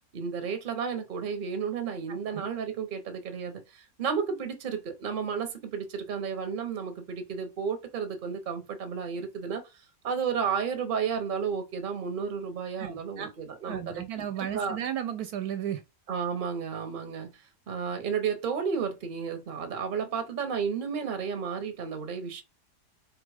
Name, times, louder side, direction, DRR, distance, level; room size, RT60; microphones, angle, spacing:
voice 1, 0.1-9.6 10.0-14.2 14.5-14.8 16.1-17.3 17.7-22.4, right 6 dB, 40° right, 0.8 m, -32 dB
voice 2, 2.1-2.5 12.8-13.3 13.7-15.8, right 10 dB, 75° right, 1.0 m, -34 dB
4.1 x 2.4 x 4.7 m
omnidirectional pair, 1.7 m